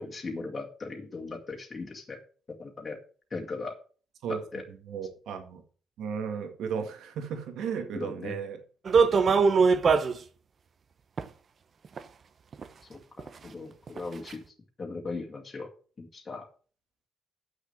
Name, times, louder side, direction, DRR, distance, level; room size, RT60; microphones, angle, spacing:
voice 1, 0.0-2.2 2.6-3.0 3.3-3.8 4.3-4.6 7.9-8.4 12.9-14.4 14.8-15.7 16.0-16.4, left 3 dB, 35° left, 0 dB, 2.1 m, -38 dB
voice 2, 4.9-5.6 6.0-8.6 9.4-9.5, right 6 dB, 80° right, 6 dB, 2.0 m, -35 dB
sound 1, 8.8-10.2 11.2-11.3 12.0-12.1 12.5-12.6 13.2-13.3 13.9-14.0 14.3-14.4, right 5 dB, 45° right, 1.0 m, -21 dB
8.4 x 6.5 x 7.4 m, 0.41 s
cardioid pair, 90°, 0 cm